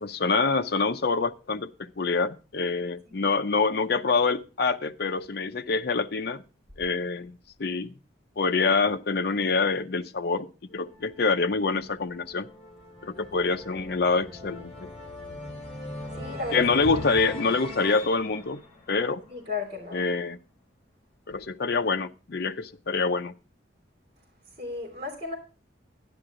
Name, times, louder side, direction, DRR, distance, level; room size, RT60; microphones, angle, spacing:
voice 1, 0.0-6.4 6.8-7.9 8.4-12.5 13.0-14.9 16.5-18.6 18.9-19.2 19.9-20.4 21.3-23.3, left 4 dB, 55° left, 0.6 m, -26 dB
sound 1, 10.7-19.7, left 2 dB, 30° left, 3.0 m, -40 dB
voice 2, 16.1-16.6 19.3-20.0 24.6-25.4, left 4 dB, 35° right, 3.1 m, -34 dB
11.5 x 11.0 x 3.7 m
head